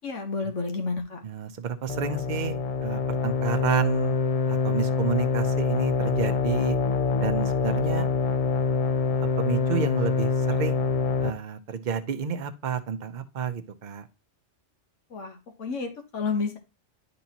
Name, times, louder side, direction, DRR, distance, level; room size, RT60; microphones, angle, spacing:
voice 1, 0.0-1.2 15.1-16.6, left 4 dB, 85° left, 5 dB, 1.5 m, -30 dB
voice 2, 1.2-4.2 4.5-6.8 7.2-8.1 9.2-10.8 11.2-14.0, right 7 dB, 45° right, 8 dB, 0.7 m, -30 dB
sound 1, 1.9-11.3, left 4 dB, 70° left, 0.3 m, -25 dB
10.5 x 4.1 x 2.8 m, 0.28 s
omnidirectional pair, 1.2 m